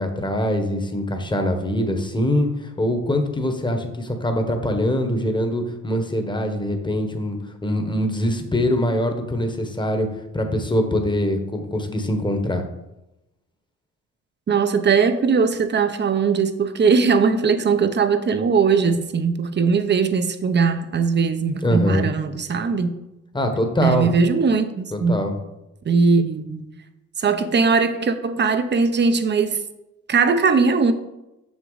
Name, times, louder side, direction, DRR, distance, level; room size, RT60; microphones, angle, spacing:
voice 1, 0.0-7.4 7.6-10.1 10.3-12.6 21.6-22.1 23.3-24.1 24.9-25.3, left 1 dB, 15° left, 5 dB, 1.2 m, -23 dB
voice 2, 14.5-22.9 23.8-25.1 25.8-26.6 27.2-29.6 30.1-30.9, right 5 dB, 35° right, 10 dB, 0.7 m, -19 dB
6.7 x 6.1 x 4.0 m, 0.94 s
cardioid pair, 90°, 30 cm